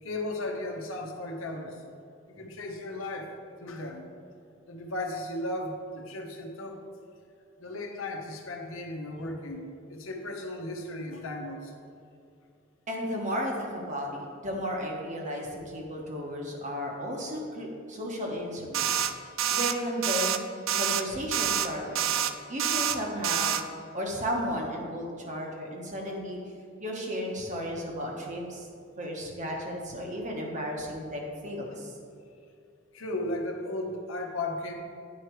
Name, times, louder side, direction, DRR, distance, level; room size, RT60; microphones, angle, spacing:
voice 1, 0.0-1.8 2.3-3.3 3.6-4.0 4.7-6.8 7.6-11.7 31.7-31.8 32.9-34.7, left 1 dB, 80° left, 2 dB, 1.0 m, -35 dB
voice 2, 12.9-19.0 19.5-20.4 20.7-22.2 22.5-23.6 23.9-26.4 26.8-28.7 29.0-31.9, equal, 35° right, 0 dB, 1.2 m, -34 dB
sound 1, 18.7-19.1 19.4-19.7 20.0-20.4 20.7-21.0 21.3-21.7 22.0-22.3 22.6-23.0 23.2-23.6, right 9 dB, 70° right, 0.4 m, -27 dB
8.7 x 4.9 x 4.6 m, 2.5 s
head